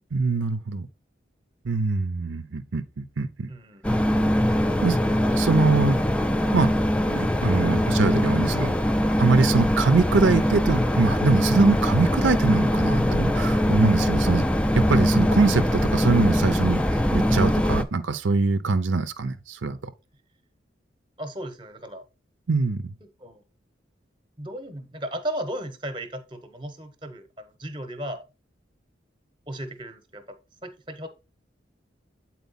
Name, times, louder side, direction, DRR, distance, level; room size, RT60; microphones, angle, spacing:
voice 1, 0.1-0.9 1.6-3.5 4.8-5.0 5.4-6.0 6.5-6.7 7.1-8.7 9.2-14.5 14.7-16.8 17.1-19.9 22.5-22.9, right 3 dB, 90° right, 0.6 m, -23 dB
voice 2, 3.5-3.8 21.2-22.0 23.0-23.4 24.4-28.2 29.5-30.4 30.6-31.1, right 1 dB, 25° right, 0.9 m, -35 dB
sound 1, 3.8-17.8, equal, 5° left, 0.3 m, -22 dB
8.2 x 4.3 x 4.0 m
head